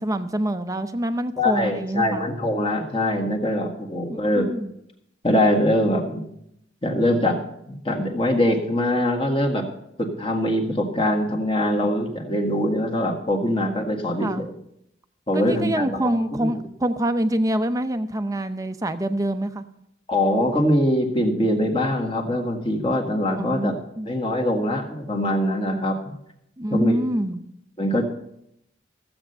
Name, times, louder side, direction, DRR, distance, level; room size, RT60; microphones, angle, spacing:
voice 1, 0.0-2.2 4.1-4.7 14.2-14.5 15.3-19.6 23.4-24.1 26.6-27.5, right 1 dB, 20° right, 10 dB, 0.6 m, -26 dB
voice 2, 1.4-4.5 5.2-6.3 6.8-7.4 7.7-9.7 10.0-14.5 15.3-16.5 20.1-23.7 24.0-26.2 26.7-27.1 27.8-28.0, left 1 dB, 30° left, 1 dB, 1.7 m, -23 dB
15.0 x 7.8 x 5.5 m, 0.77 s
head